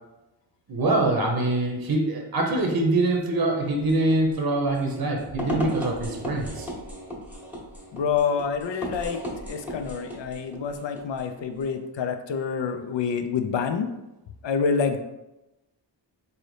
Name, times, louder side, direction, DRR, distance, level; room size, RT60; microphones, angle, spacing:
voice 1, 0.7-6.7, right 2 dB, 50° right, 2 dB, 0.7 m, -24 dB
sound 1, 3.6-11.8, equal, 5° right, 0.9 m, -36 dB
voice 2, 7.9-13.9 14.4-15.0, left 6 dB, 70° left, 7 dB, 0.5 m, -27 dB
3.8 x 2.7 x 3.2 m, 0.98 s
wide cardioid pair, 65°, 45 cm